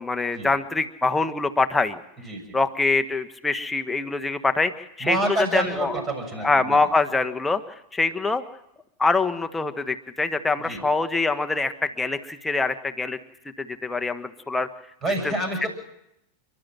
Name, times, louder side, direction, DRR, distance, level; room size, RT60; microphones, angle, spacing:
voice 1, 0.0-2.0 2.5-5.9 6.4-7.6 7.9-8.4 9.0-13.2 13.6-14.7 15.6-15.7, left 3 dB, 10° left, 7 dB, 1.3 m, -24 dB
voice 2, 2.2-2.6 5.0-6.8 10.6-10.8 15.0-15.7, right 2 dB, 25° right, 5 dB, 6.4 m, -28 dB
29.0 x 12.0 x 7.5 m, 0.83 s
figure-of-eight pair, 90°, 0 cm